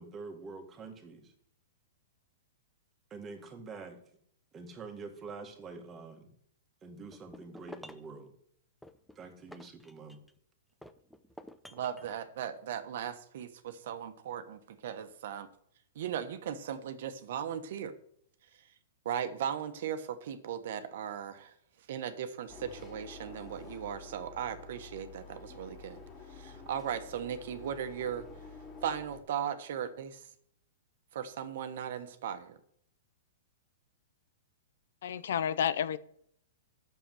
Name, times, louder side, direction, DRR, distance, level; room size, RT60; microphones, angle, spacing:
voice 1, 0.0-1.3 3.1-4.0 4.5-6.3 6.8-8.3 9.2-10.2, right 4 dB, 20° right, 4 dB, 1.8 m, -46 dB
sound 1, 7.1-8.1 8.8-10.4 10.8-12.2, left 1 dB, 5° left, 0.5 m, -50 dB
voice 2, 11.7-15.5 15.9-17.9 19.0-21.5 21.9-26.0 26.3-28.2 28.8-30.3 31.1-32.6, right 9 dB, 60° right, 9 dB, 1.2 m, -37 dB
sound 2, 22.5-29.2, left 4 dB, 20° left, 2.3 m, -49 dB
voice 3, 35.0-36.0, left 8 dB, 70° left, 16 dB, 0.6 m, -30 dB
8.9 x 7.0 x 7.7 m, 0.67 s
hypercardioid pair, 150°, 0 cm